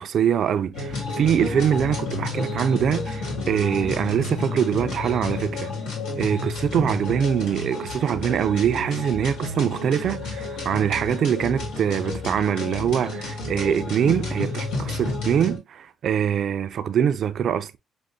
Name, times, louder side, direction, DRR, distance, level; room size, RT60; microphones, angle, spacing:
voice 1, 0.0-5.7 6.2-17.8, right 8 dB, 65° right, 0.4 m, -23 dB
sound 1, 0.7-15.6, left 3 dB, 90° left, 1.7 m, -31 dB
6.1 x 2.1 x 2.7 m
cardioid pair, 90°, 0 cm